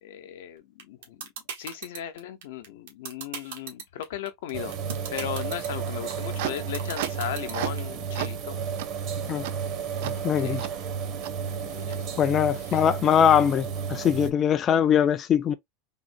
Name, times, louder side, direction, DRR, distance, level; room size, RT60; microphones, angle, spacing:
voice 1, 0.0-1.3 1.6-4.8 5.1-8.6 10.4-10.6 11.7-12.1 12.6-12.8, left 11 dB, 85° left, 0.7 m, -37 dB
sound 1, 0.8-7.8, right 7 dB, 90° right, 1.1 m, -36 dB
sound 2, 4.5-14.3, right 6 dB, 50° right, 0.7 m, -32 dB
sound 3, 6.0-7.9 8.2-8.4 8.8-8.9 9.4-9.5 10.0-10.1 10.6-10.7 11.2-11.3 11.9-12.0, right 14 dB, 75° right, 0.3 m, -34 dB
voice 2, 10.0-10.7 12.2-15.5, left 8 dB, 30° left, 0.3 m, -22 dB
3.6 x 2.1 x 2.5 m
supercardioid pair, 135°, 0 cm